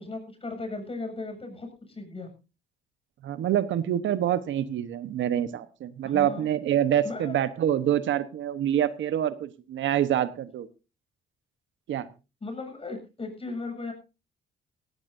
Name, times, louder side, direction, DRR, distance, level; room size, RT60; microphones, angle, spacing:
voice 1, 0.0-2.3 6.0-6.5 7.0-7.4 12.4-13.9, left 3 dB, 30° left, 4 dB, 7.3 m, -36 dB
voice 2, 3.2-10.7 11.9-12.1, right 10 dB, 75° right, 13 dB, 1.2 m, -26 dB
17.0 x 17.0 x 2.7 m, 0.30 s
cardioid pair, 90°, 20 cm